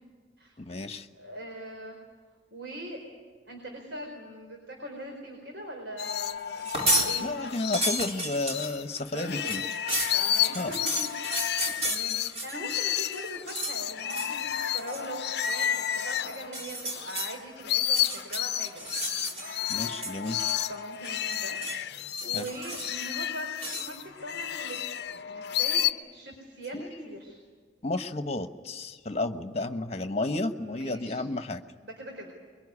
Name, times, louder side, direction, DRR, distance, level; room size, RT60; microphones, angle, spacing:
voice 1, 0.6-1.1 7.2-9.6 10.5-10.7 19.7-20.5 22.3-22.5 26.7-27.2 27.8-31.6, left 2 dB, 35° left, 8 dB, 1.2 m, -32 dB
voice 2, 1.1-2.0 2.5-3.0 3.5-6.7 7.0-7.2 9.0-9.6 10.1-19.0 20.7-21.6 22.0-24.8 25.1-27.4 30.5-31.2 31.8-32.3, right 1 dB, 75° right, 1 dB, 4.6 m, -41 dB
sound 1, 6.0-8.8 9.2-17.3 17.6-25.9, left 10 dB, 65° left, 0.7 m, -31 dB
sound 2, 6.6-7.1 7.5-12.8 13.1-13.8 14.1-14.4 14.8-15.1 16.4-17.3 17.8-19.6 19.9-20.8 21.0-21.8 22.2-23.1 23.6-23.9, right 1 dB, 35° right, 4.2 m, -33 dB
24.0 x 23.0 x 9.8 m, 1.5 s
head